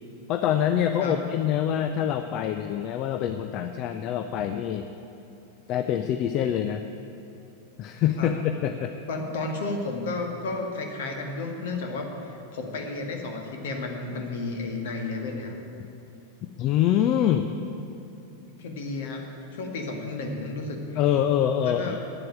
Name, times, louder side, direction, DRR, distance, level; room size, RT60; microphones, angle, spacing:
voice 1, 0.3-4.9 5.7-6.9 7.8-8.9 16.6-17.5 20.9-22.0, left 10 dB, 40° left, 8 dB, 0.5 m, -25 dB
voice 2, 9.1-15.5 18.6-21.0 21.6-22.0, left 3 dB, 55° left, 3 dB, 1.7 m, -32 dB
9.8 x 7.7 x 9.0 m, 2.9 s
figure-of-eight pair, 90°, 0 cm